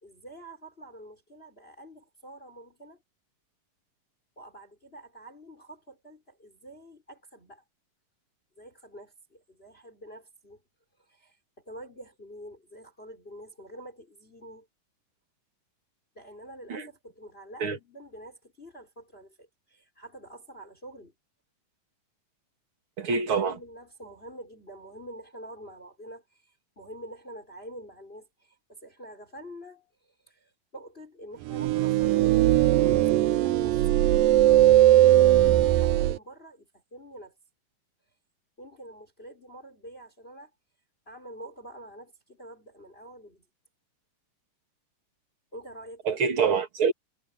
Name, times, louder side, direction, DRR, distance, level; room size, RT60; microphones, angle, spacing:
voice 1, 0.0-3.0 4.4-7.6 8.6-10.6 11.0-11.4 11.6-14.7 16.2-21.1 23.0-33.8 35.2-37.3 38.6-40.5 41.1-43.5 45.5-46.2, right 1 dB, 15° left, 5.3 m, -47 dB
voice 2, 23.0-23.5 46.1-46.9, right 5 dB, 40° right, 2.7 m, -25 dB
sound 1, 31.5-36.2, right 14 dB, 90° right, 2.4 m, -19 dB
omnidirectional pair, 3.9 m